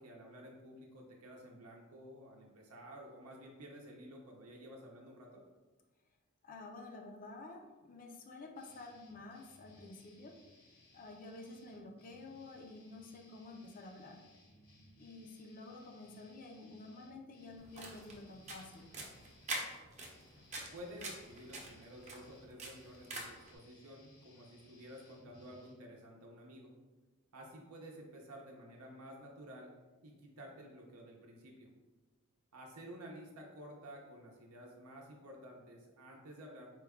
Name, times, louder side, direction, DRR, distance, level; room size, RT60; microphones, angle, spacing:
voice 1, 0.0-5.4 20.7-26.7 27.3-29.7 30.0-31.7 32.5-36.7, equal, 75° right, 0 dB, 0.6 m, -52 dB
voice 2, 6.4-10.4 10.9-14.2 15.0-18.9, left 2 dB, 40° left, 2 dB, 0.5 m, -50 dB
sound 1, 8.6-25.7, left 2 dB, 75° left, 1.2 m, -64 dB
sound 2, 17.6-23.5, right 2 dB, 30° right, 0.7 m, -46 dB
4.5 x 2.3 x 3.5 m, 1.2 s
head